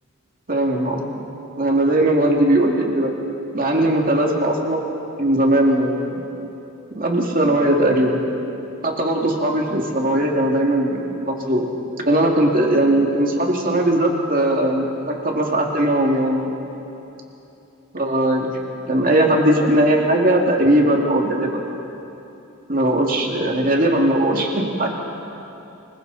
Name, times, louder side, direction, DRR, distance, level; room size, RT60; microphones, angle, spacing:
voice 1, 0.5-1.1 1.6-3.1 3.5-4.9 5.2-6.2 6.9-8.2 8.8-11.6 12.0-16.5 17.9-18.5 18.9-21.6 22.7-24.9, right 1 dB, 40° right, 0 dB, 2.4 m, -19 dB
28.5 x 22.0 x 4.1 m, 2.9 s
head